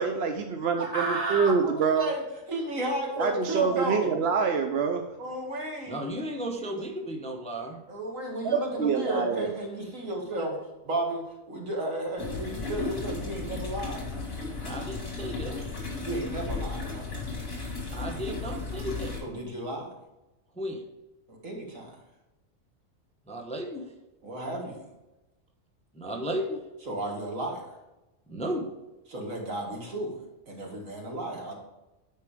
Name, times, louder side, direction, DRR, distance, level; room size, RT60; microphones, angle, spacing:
voice 1, 0.0-2.1 3.2-5.1 8.4-9.5, right 5 dB, 60° right, 5 dB, 0.8 m, -26 dB
voice 2, 0.8-2.2 2.5-4.1 5.2-6.0 7.9-10.5 10.8-11.2 11.5-14.1 16.0-17.1 19.2-19.9 21.3-22.0 24.2-24.8 26.9-27.7 29.1-30.1 30.5-31.5, right 1 dB, 75° right, -1 dB, 2.3 m, -33 dB
voice 3, 5.9-7.8 14.6-15.6 17.9-19.2 20.6-20.8 23.3-23.9 25.9-26.6 28.3-28.7, equal, 5° left, 2 dB, 0.8 m, -34 dB
sound 1, 12.2-19.2, left 3 dB, 65° left, 2.5 m, -35 dB
9.6 x 4.6 x 4.9 m, 1.0 s
omnidirectional pair, 1.4 m